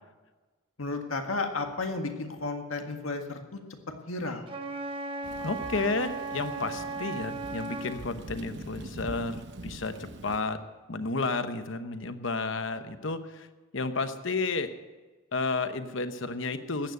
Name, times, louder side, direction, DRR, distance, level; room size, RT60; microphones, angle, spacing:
voice 1, 0.8-3.6 4.1-4.5, left 3 dB, 80° left, 5 dB, 1.7 m, -33 dB
Wind instrument woodwind instrument, 4.5-8.0, right 3 dB, 25° right, 1.1 m, -36 dB
Thunder / Rain, 5.2-10.4, right 2 dB, 55° right, 0.9 m, -44 dB
voice 2, 5.4-10.6 10.9-13.5 13.7-14.7 15.3-16.9, left 3 dB, 65° left, 10 dB, 1.0 m, -32 dB
14.5 x 9.6 x 7.8 m, 1.2 s
head